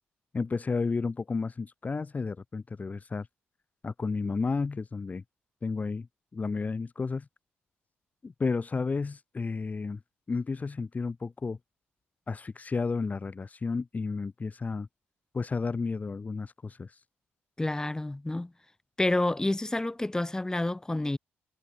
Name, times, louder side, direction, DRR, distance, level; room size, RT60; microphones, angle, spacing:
voice 1, 0.3-3.3 3.8-5.2 5.6-6.1 6.3-7.3 8.2-10.0 10.3-11.6 12.3-14.9 15.3-17.0, left 4 dB, 30° left, 4.4 m, -32 dB
voice 2, 17.6-18.5 19.0-21.2, left 2 dB, 15° left, 5.1 m, -29 dB
cardioid pair, 80°, 5 cm